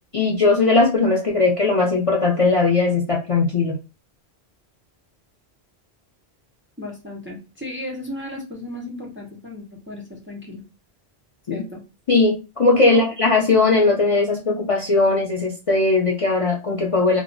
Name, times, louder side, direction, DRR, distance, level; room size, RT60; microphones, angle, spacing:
voice 1, 0.1-3.8 12.1-17.2, left 3 dB, 45° left, -1 dB, 0.4 m, -18 dB
voice 2, 6.8-10.6 11.5-11.8 12.8-13.1, left 1 dB, 15° right, -1 dB, 0.4 m, -34 dB
2.1 x 2.0 x 3.7 m, 0.30 s
omnidirectional pair, 1.1 m